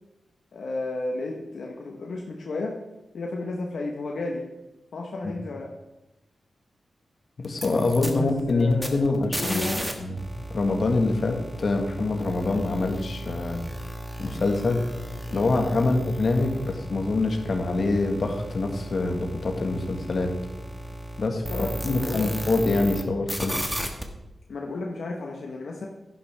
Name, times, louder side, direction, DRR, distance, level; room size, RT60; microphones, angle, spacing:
voice 1, 0.5-2.8 3.1-4.4 4.9-5.7 8.1-9.9 21.3-22.3 24.5-25.9, left 2 dB, 75° left, 0 dB, 1.2 m, -33 dB
voice 2, 7.4-10.1 10.5-13.6 14.2-14.8 15.3-20.3 21.2-23.6, left 2 dB, 55° left, 3 dB, 1.6 m, -25 dB
sound 1, 7.4-9.9 10.2-23.0 23.3-24.0, equal, 10° right, 1.5 m, -35 dB
11.0 x 10.5 x 3.5 m, 0.97 s
cardioid pair, 75°, 0 cm